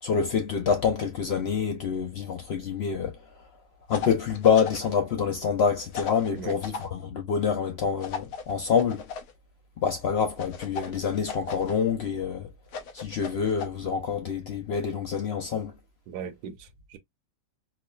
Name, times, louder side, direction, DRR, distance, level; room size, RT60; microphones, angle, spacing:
voice 1, 0.0-3.2 3.9-9.0 9.8-12.5 12.9-15.7, left 6 dB, 85° left, 0.5 m, -26 dB
sound 1, 3.9-4.9 5.9-6.9 8.0-9.3 10.4-11.7 12.7-13.7, left 6 dB, 70° left, 1.1 m, -37 dB
voice 2, 16.1-17.0, right 7 dB, 75° right, 1.1 m, -39 dB
4.5 x 2.1 x 2.3 m
omnidirectional pair, 1.8 m